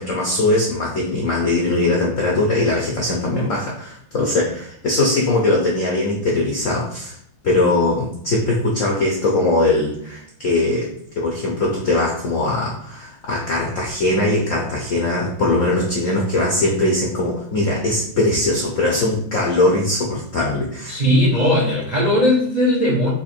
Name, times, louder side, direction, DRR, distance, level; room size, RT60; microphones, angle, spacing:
voice 1, 0.0-7.2 7.4-21.0, left 2 dB, 75° left, -2 dB, 0.7 m, -20 dB
voice 2, 20.9-23.1, left 1 dB, 80° right, -3 dB, 0.4 m, -17 dB
4.0 x 2.8 x 4.4 m, 0.67 s
omnidirectional pair, 2.3 m